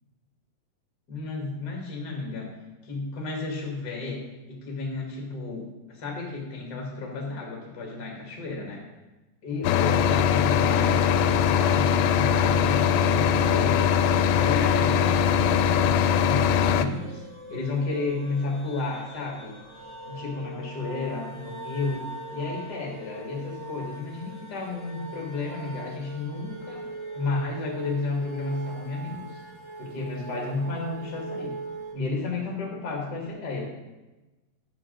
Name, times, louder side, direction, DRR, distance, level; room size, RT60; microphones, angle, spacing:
voice 1, 1.1-2.5 2.8-4.2 4.5-8.8 9.4-13.9 14.3-17.2 17.5-19.5 20.0-22.0 22.3-26.8 27.1-29.4 29.8-31.5 31.9-33.7, left 3 dB, 35° left, -1 dB, 1.8 m, -32 dB
sound 1, 9.6-16.9, left 8 dB, 90° left, 2.4 m, -21 dB
sound 2, 14.9-31.9, right 3 dB, 20° left, 0.7 m, -41 dB
10.5 x 7.5 x 3.9 m, 1.1 s
omnidirectional pair, 4.2 m